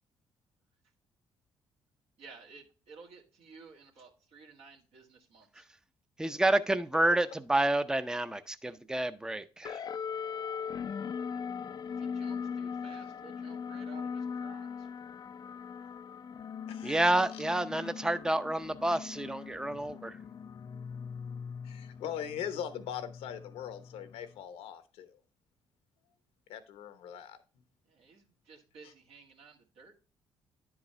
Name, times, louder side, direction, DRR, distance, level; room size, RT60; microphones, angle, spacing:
voice 1, 2.2-5.7 11.8-14.9 27.9-30.0, right 5 dB, 70° right, 1.7 m, -54 dB
voice 2, 6.2-9.8 16.8-20.2, right 1 dB, 5° right, 0.6 m, -29 dB
sound 1, 9.6-24.4, left 6 dB, 45° left, 0.4 m, -40 dB
voice 3, 16.7-17.0 21.6-25.2 26.5-27.4 28.8-28.9, left 9 dB, 75° left, 0.9 m, -40 dB
10.0 x 4.8 x 3.2 m
supercardioid pair, 60°, 10 cm